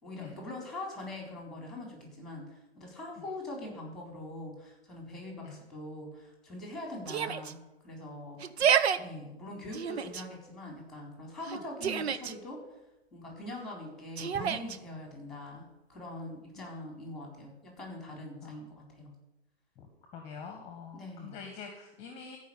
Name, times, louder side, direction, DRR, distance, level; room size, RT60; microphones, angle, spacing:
voice 1, 0.0-8.4 9.0-12.6 13.1-19.1 20.9-21.4, left 1 dB, ahead, 0 dB, 3.9 m, -43 dB
Yell, 7.1-7.5 8.4-9.0 9.7-10.2 11.4-12.3 14.2-14.8, right 8 dB, 70° right, 1.0 m, -29 dB
voice 2, 18.4-18.8 19.8-19.9 20.1-22.4, left 6 dB, 20° left, 4 dB, 1.6 m, -45 dB
14.0 x 5.5 x 8.7 m, 0.94 s
hypercardioid pair, 145°, 33 cm